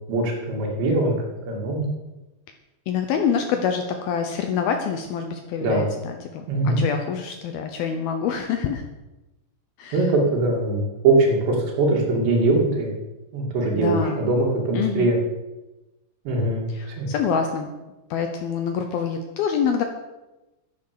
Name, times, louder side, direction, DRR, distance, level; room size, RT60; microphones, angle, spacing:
voice 1, 0.1-1.1 1.5-1.8 5.6-5.8 6.5-6.8 9.9-12.9 13.3-15.2 16.3-17.1, right 2 dB, 65° right, 0 dB, 4.5 m, -22 dB
voice 2, 2.9-8.9 9.8-10.1 13.8-14.2 14.7-15.1 16.7-17.7 18.1-19.8, left 7 dB, 85° left, 5 dB, 2.1 m, -26 dB
11.0 x 10.5 x 6.8 m, 1.0 s
omnidirectional pair, 5.6 m